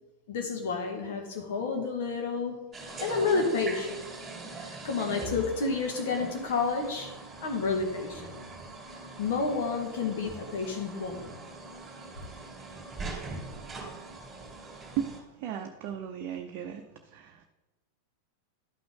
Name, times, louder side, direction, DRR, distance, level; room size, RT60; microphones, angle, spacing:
voice 1, 0.3-2.7 3.0-4.0 4.5-7.1 7.4-8.3 9.2-11.5, left 4 dB, 55° left, 2 dB, 2.1 m, -30 dB
sound 1, 2.7-15.2, right 3 dB, 15° right, 2.8 m, -42 dB
voice 2, 15.0-16.9 17.1-17.5, right 9 dB, 40° right, 3 dB, 0.7 m, -36 dB
11.5 x 6.0 x 3.8 m, 1.1 s
figure-of-eight pair, 90°, 0 cm